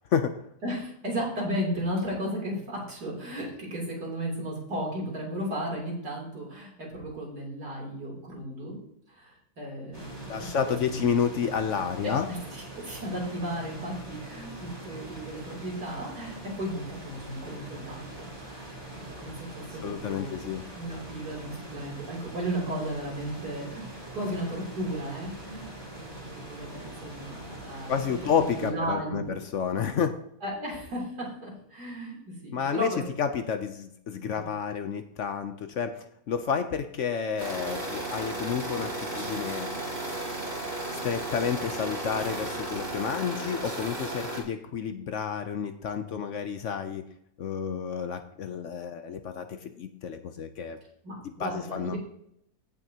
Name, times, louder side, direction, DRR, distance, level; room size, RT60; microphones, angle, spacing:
voice 1, 0.1-0.4 10.3-12.3 19.8-20.6 27.9-30.1 32.5-39.7 41.0-47.1 47.4-50.8 51.4-52.0, left 7 dB, 60° left, 8 dB, 0.9 m, -30 dB
voice 2, 0.6-8.8 9.1-11.0 12.0-20.4 20.8-29.2 30.4-33.0 34.3-34.4 51.0-52.0, right 1 dB, 85° right, -3 dB, 3.7 m, -35 dB
sound 1, 9.9-28.7, right 1 dB, 15° right, 3.0 m, -43 dB
sound 2, 37.4-44.4, right 2 dB, 40° right, 2.6 m, -34 dB
15.5 x 6.2 x 2.9 m, 0.74 s
omnidirectional pair, 1.7 m